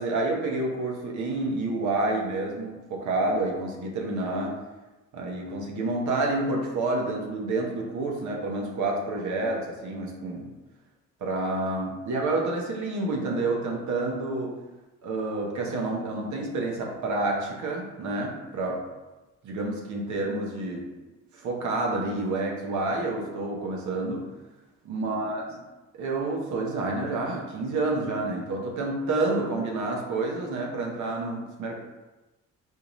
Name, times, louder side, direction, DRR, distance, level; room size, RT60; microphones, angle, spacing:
voice 1, 0.0-4.6 5.1-10.5 11.2-14.6 15.0-18.8 19.4-20.9 21.3-24.3 24.8-25.4 25.9-31.8, right 2 dB, 75° right, 0 dB, 0.9 m, -29 dB
3.9 x 2.7 x 3.0 m, 1.1 s
cardioid pair, 90°, 30 cm